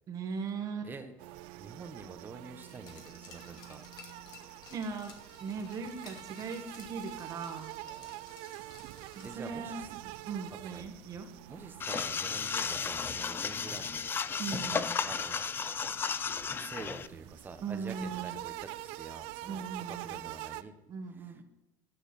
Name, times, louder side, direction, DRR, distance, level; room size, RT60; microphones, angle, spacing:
voice 1, 0.1-0.9 4.7-5.1 5.4-7.7 9.2-9.8 10.3-11.3 14.4-15.0 17.6-18.3 19.5-20.3 20.9-21.4, right 5 dB, 40° right, 5 dB, 1.8 m, -39 dB
sound 1, 1.2-20.6, right 17 dB, 75° right, 0.5 m, -46 dB
voice 2, 1.6-3.8 7.8-8.4 8.8-8.9 9.2-9.9 10.5-10.9 11.1-14.2 14.6-15.9 16.6-20.7 21.1-21.4, right 4 dB, 20° right, 7 dB, 1.3 m, -47 dB
Glass, 2.6-9.6 9.9-10.0, left 4 dB, 50° left, 2.5 m, -55 dB
sound 2, 11.8-17.1, left 6 dB, 25° left, 0.5 m, -34 dB
11.5 x 6.4 x 6.2 m, 0.95 s
cardioid pair, 130°, 9 cm